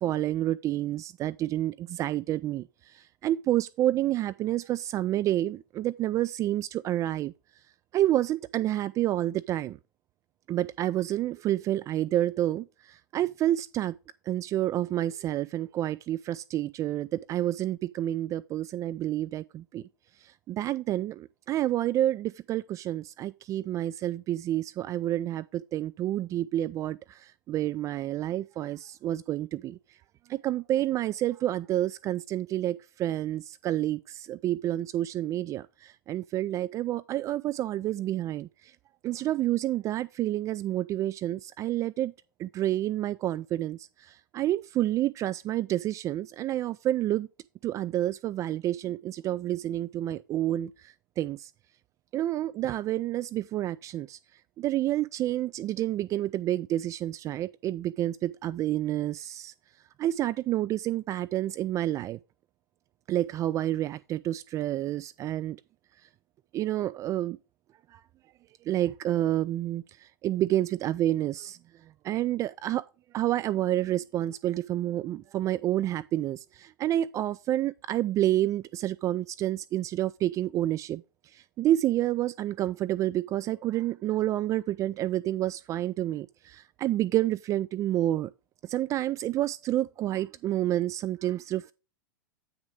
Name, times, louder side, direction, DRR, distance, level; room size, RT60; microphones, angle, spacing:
voice 1, 0.0-2.7 2.9-7.3 7.9-9.8 10.5-14.0 14.3-19.9 20.2-29.8 30.3-38.7 39.0-42.1 42.4-47.3 47.6-51.5 52.1-54.2 54.6-59.5 60.0-62.2 63.1-65.6 66.5-67.4 67.9-68.0 68.7-71.6 72.0-72.8 73.1-81.0 81.3-88.3 88.7-91.7, right 13 dB, 30° right, 0.4 m, -29 dB
8.7 x 6.3 x 3.5 m
figure-of-eight pair, 95°, 11 cm